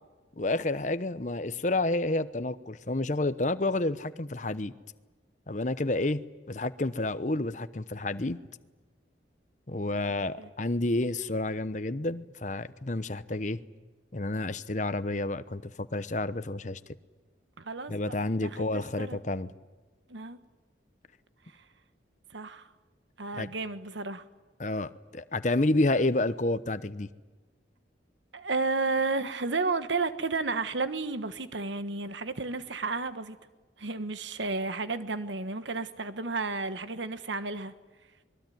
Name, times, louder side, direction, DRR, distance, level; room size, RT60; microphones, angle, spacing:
voice 1, 0.4-4.7 5.5-6.2 6.5-8.4 9.7-13.6 14.1-16.8 17.9-19.5 23.3-23.5 24.6-27.1, left 2 dB, 40° left, 13 dB, 0.9 m, -29 dB
voice 2, 17.6-19.2 20.1-20.4 22.3-22.7 23.2-24.2 28.3-33.4 33.8-37.7, right 3 dB, 80° right, 11 dB, 1.4 m, -32 dB
25.5 x 22.0 x 9.3 m, 1.3 s
head